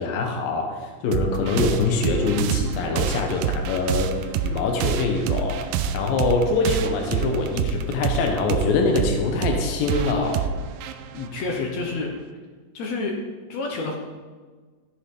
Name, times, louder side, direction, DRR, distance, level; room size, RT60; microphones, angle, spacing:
voice 1, 0.0-10.4, left 3 dB, 90° left, 2 dB, 2.8 m, -24 dB
sound 1, 1.1-12.2, right 7 dB, 85° right, 2.3 m, -27 dB
voice 2, 11.1-12.1 12.7-13.1 13.5-14.0, left 3 dB, 65° left, 1 dB, 2.0 m, -28 dB
13.0 x 8.4 x 3.8 m, 1.4 s
omnidirectional pair, 3.9 m